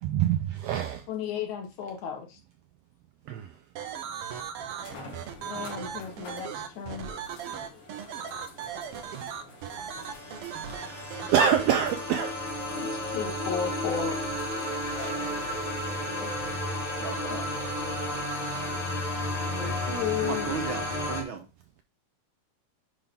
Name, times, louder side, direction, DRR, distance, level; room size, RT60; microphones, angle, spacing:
voice 1, 0.0-1.0 3.3-3.5 10.7-11.0 11.3-12.4, right 9 dB, 90° right, 1.4 m, -25 dB
voice 2, 1.1-2.4 5.4-7.1 7.7-7.8 10.0-10.2 10.6-10.7 12.8-14.2 15.0-15.1 16.0-16.3 17.3-18.3 18.5-18.6 19.5-20.5, left 8 dB, 75° left, 2.6 m, -35 dB
sound 1, 3.8-3.9 4.8-15.9 16.6-16.7 20.1-20.2, left 2 dB, 50° left, 2.3 m, -49 dB
sound 2, 3.8-11.6, right 8 dB, 75° right, 1.3 m, -37 dB
sound 3, 10.0-21.2, left 1 dB, 30° left, 0.7 m, -32 dB
voice 3, 17.0-17.5 19.6-19.8 20.2-21.4, right 6 dB, 55° right, 1.6 m, -36 dB
10.0 x 3.8 x 3.6 m
omnidirectional pair, 3.4 m